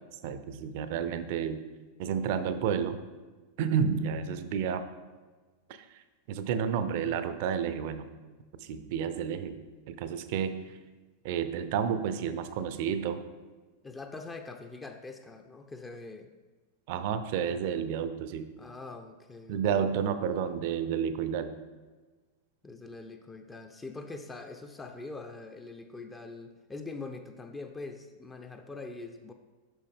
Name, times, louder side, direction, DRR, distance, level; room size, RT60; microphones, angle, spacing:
voice 1, 0.2-1.6 2.0-3.0 3.6-4.8 5.7-5.8 6.3-8.1 8.6-10.6 11.2-13.2 16.9-18.5 19.5-21.5, right 7 dB, 50° right, 11 dB, 0.4 m, -31 dB
voice 2, 13.8-16.3 18.6-19.8 22.6-29.3, left 3 dB, 15° left, 6 dB, 0.4 m, -43 dB
6.1 x 5.5 x 3.4 m, 1.3 s
figure-of-eight pair, 90°, 0 cm